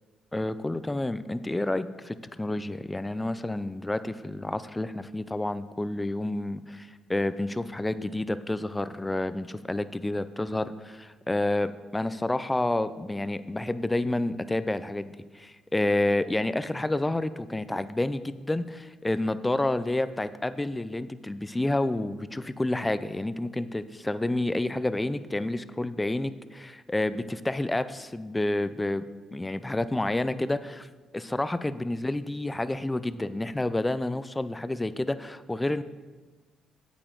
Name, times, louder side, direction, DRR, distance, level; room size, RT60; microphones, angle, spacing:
voice 1, 0.3-29.0 29.3-30.9 31.1-35.8, left 2 dB, 15° left, 13 dB, 0.4 m, -29 dB
8.7 x 8.5 x 3.8 m, 1.3 s
cardioid pair, 90°, 0 cm